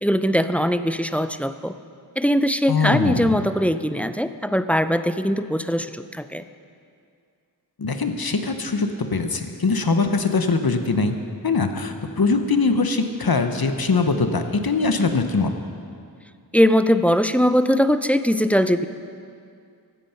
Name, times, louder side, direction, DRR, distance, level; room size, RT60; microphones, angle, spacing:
voice 1, 0.0-1.8 2.2-6.4 16.5-18.9, equal, 5° left, 11 dB, 0.4 m, -20 dB
voice 2, 2.7-3.4 7.8-11.2 11.4-15.5, left 4 dB, 60° left, 7 dB, 0.9 m, -22 dB
15.5 x 8.8 x 5.8 m, 2.3 s
wide cardioid pair, 40°, 40 cm